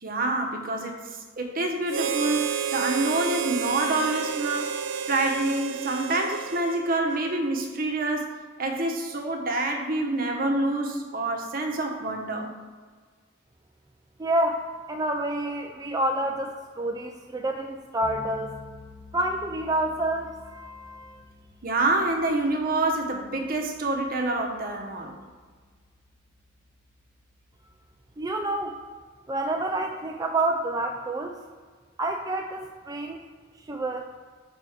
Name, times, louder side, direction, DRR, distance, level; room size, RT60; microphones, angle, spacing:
voice 1, 0.0-4.8 5.1-8.3 8.6-12.5 21.6-25.2, right 2 dB, 45° right, 3 dB, 1.0 m, -27 dB
Harmonica, 1.9-7.4, right 8 dB, 70° right, 0.5 m, -31 dB
voice 2, 14.2-18.5 19.1-21.2 28.2-28.8 29.3-31.4 32.0-33.2 33.7-34.1, right 1 dB, 20° right, 2 dB, 0.4 m, -28 dB
sound 1, 18.0-28.9, left 1 dB, 45° left, 1.4 m, -50 dB
5.4 x 4.7 x 6.4 m, 1.5 s
head